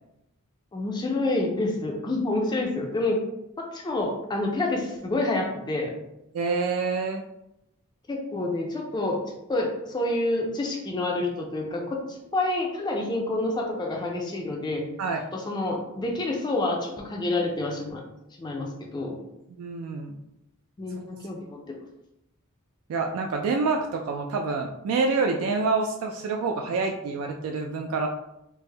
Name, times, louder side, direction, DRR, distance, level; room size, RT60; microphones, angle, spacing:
voice 1, 0.7-3.2 3.6-5.9 8.1-9.2 9.5-14.9 15.3-18.0 18.4-19.2 20.8-21.8, left 2 dB, 20° left, 0 dB, 0.4 m, -28 dB
voice 2, 6.3-7.2 15.0-15.2 19.5-20.2 22.9-28.1, right 4 dB, 70° right, 3 dB, 0.3 m, -27 dB
3.3 x 2.0 x 3.2 m, 0.86 s
head